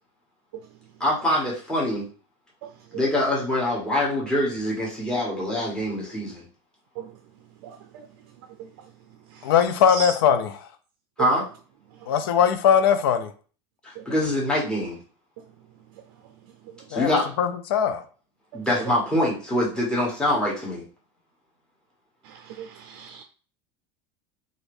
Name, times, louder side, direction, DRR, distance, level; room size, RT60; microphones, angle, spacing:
voice 1, 1.0-2.1 2.9-6.4 11.2-11.4 13.8-15.0 16.9-17.3 18.5-20.8, left 1 dB, 5° left, -5 dB, 1.1 m, -24 dB
voice 2, 7.6-8.0 9.9-10.1 14.0-14.1 22.3-23.2, right 5 dB, 70° right, 5 dB, 0.4 m, -37 dB
voice 3, 9.4-10.7 12.1-13.3 16.9-18.0, left 8 dB, 85° left, 10 dB, 0.5 m, -21 dB
2.6 x 2.5 x 3.3 m, 0.40 s
supercardioid pair, 135°, 12 cm